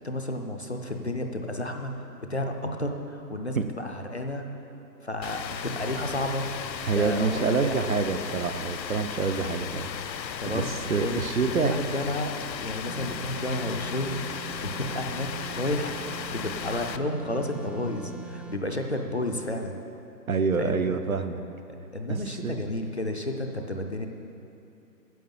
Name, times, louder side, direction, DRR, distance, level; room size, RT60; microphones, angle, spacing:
voice 1, 0.0-1.9 2.3-4.5 5.0-6.5 6.9-8.0 10.4-12.3 12.6-15.3 15.5-16.0 16.3-19.8 20.5-20.9 21.9-24.1, left 1 dB, 40° left, 3 dB, 0.6 m, -31 dB
Rain, 5.2-17.0, left 7 dB, 85° left, 0.7 m, -36 dB
voice 2, 6.8-9.9 10.5-11.7 20.3-21.4 22.1-22.6, right 5 dB, 55° right, 9 dB, 0.6 m, -27 dB
sound 1, 12.9-18.7, right 8 dB, 5° right, 0.3 m, -43 dB
9.3 x 6.7 x 7.1 m, 2.7 s
hypercardioid pair, 175°, 50 cm